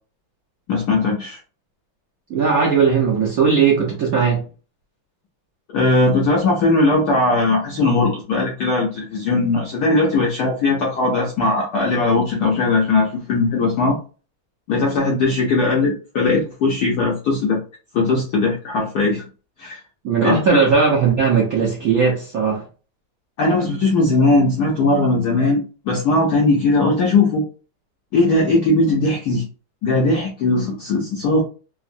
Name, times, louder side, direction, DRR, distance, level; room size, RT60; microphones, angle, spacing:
voice 1, 0.7-1.4 5.7-14.0 14.7-17.6 17.9-19.2 19.6-19.8 20.2-20.6 23.4-27.4 28.1-29.5 29.8-31.4, left 2 dB, 75° left, 0.9 m, -19 dB
voice 2, 2.3-4.4 20.0-22.6, right 5 dB, 75° right, 0.8 m, -17 dB
3.6 x 2.0 x 2.5 m
omnidirectional pair, 2.4 m